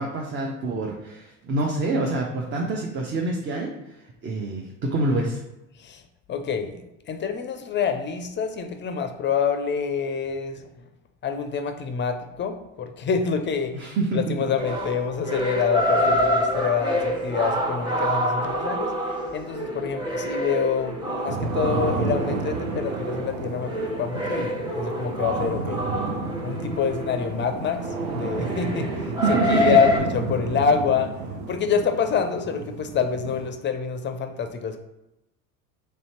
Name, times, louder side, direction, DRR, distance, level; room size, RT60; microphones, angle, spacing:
voice 1, 0.0-3.9 4.2-5.4 13.7-14.4 29.2-29.8, right 2 dB, 30° right, 0 dB, 0.6 m, -26 dB
voice 2, 6.3-6.8 7.1-10.7 11.2-13.8 14.1-23.7 24.0-25.8 26.4-31.1 31.5-34.8, left 6 dB, 30° left, 7 dB, 0.4 m, -27 dB
sound 1, 14.6-30.0, equal, 10° right, 1.0 m, -27 dB
sound 2, 21.3-33.5, right 4 dB, 85° right, 0.5 m, -32 dB
3.2 x 2.8 x 4.3 m, 0.92 s
hypercardioid pair, 70°, 41 cm